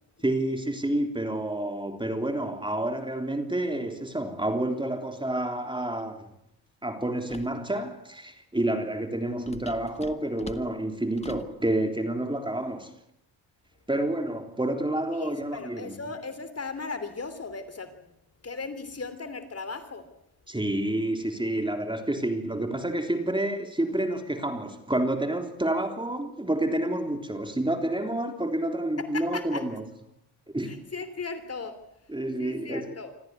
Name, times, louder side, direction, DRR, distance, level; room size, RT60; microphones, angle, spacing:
voice 1, 0.2-6.3 6.8-12.9 13.9-15.9 20.5-29.8 30.5-30.7 32.1-32.9, right 1 dB, 10° right, 3.5 m, -29 dB
sound 1, 7.3-7.6 9.5-11.6, left 3 dB, 15° left, 1.7 m, -43 dB
voice 2, 15.1-18.1 18.4-20.1 29.0-29.7 30.6-31.8 32.4-33.2, left 4 dB, 35° left, 3.2 m, -37 dB
26.5 x 14.5 x 9.7 m
supercardioid pair, 70°, 44 cm